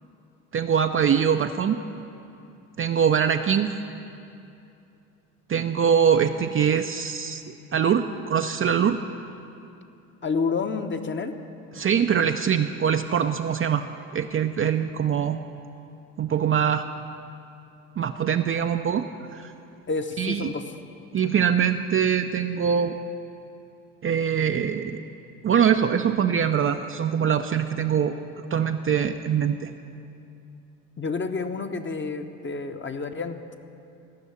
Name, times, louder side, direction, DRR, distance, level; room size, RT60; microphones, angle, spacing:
voice 1, 0.5-1.8 2.8-3.7 5.5-9.0 11.7-13.8 14.1-15.4 16.2-16.9 18.0-19.1 19.3-19.5 20.2-20.5 21.1-22.9 24.0-25.0 25.4-28.1 28.5-29.7, right 8 dB, 30° right, 7 dB, 0.5 m, -23 dB
voice 2, 10.2-11.3 19.9-20.6 31.0-33.6, left 4 dB, 25° left, 7 dB, 0.9 m, -29 dB
14.5 x 6.2 x 8.3 m, 2.7 s
hypercardioid pair, 60°, 43 cm